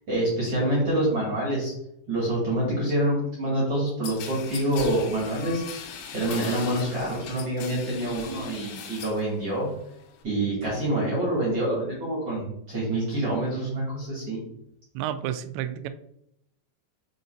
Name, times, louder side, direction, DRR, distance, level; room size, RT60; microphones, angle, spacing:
voice 1, 0.1-1.7 2.1-9.7 10.2-14.4, right 1 dB, 45° right, -6 dB, 2.1 m, -26 dB
sound 1, 4.0-9.3 9.6-10.2, left 7 dB, 80° left, 3.3 m, -38 dB
voice 2, 15.0-15.9, right 11 dB, 85° right, 10 dB, 2.6 m, -30 dB
6.8 x 5.4 x 2.6 m, 0.73 s
omnidirectional pair, 5.4 m